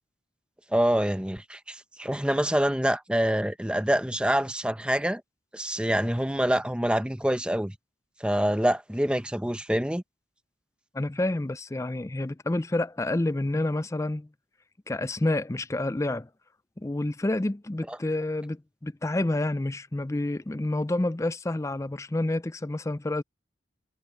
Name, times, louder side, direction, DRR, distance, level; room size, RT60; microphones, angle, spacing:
voice 1, 0.7-5.2 5.5-7.7 8.2-10.0 17.9-18.0, right 1 dB, 5° right, 0.8 m, -26 dB
voice 2, 10.9-14.3 14.9-16.3 16.8-23.2, left 2 dB, 15° left, 0.4 m, -29 dB
head